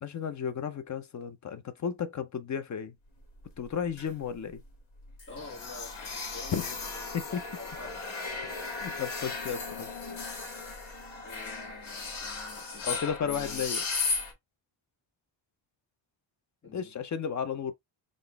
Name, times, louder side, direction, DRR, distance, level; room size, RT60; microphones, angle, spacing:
voice 1, 0.0-2.9 3.6-4.6 6.5-6.7 7.1-7.4 8.5-9.9 12.8-13.8 16.7-17.7, left 7 dB, 40° left, 0.4 m, -33 dB
sound 1, 3.2-4.3 4.5-4.7 5.0-14.3, left 4 dB, 75° left, 1.5 m, -36 dB
voice 2, 5.3-8.0 11.2-13.6 16.6-16.9, left 4 dB, 25° left, 1.6 m, -47 dB
3.8 x 2.5 x 3.2 m
wide cardioid pair, 175°, 47 cm